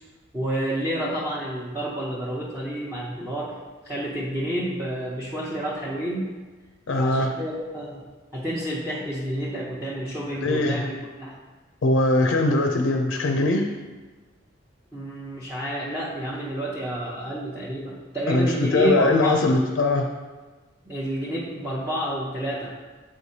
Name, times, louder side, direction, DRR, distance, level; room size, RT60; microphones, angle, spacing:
voice 1, 0.3-3.6 3.8-6.3 7.0-8.0 8.3-11.4 14.9-19.4 20.9-22.8, right 1 dB, 15° right, -9 dB, 0.7 m, -29 dB
voice 2, 6.9-7.3 10.3-10.8 11.8-13.6 18.3-20.1, left 2 dB, 75° left, 4 dB, 0.5 m, -21 dB
7.3 x 4.8 x 2.8 m, 1.3 s
head